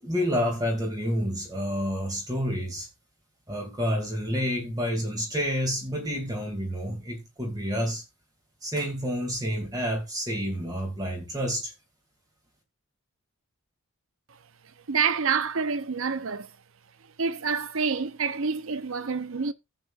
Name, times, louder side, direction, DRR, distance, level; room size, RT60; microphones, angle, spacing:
voice 1, 0.0-2.9 3.5-8.0 8.6-11.7, equal, 15° right, 2.5 m, -29 dB
voice 2, 14.9-16.5 17.2-19.5, right 5 dB, 60° right, 0.7 m, -27 dB
14.0 x 8.2 x 2.5 m
head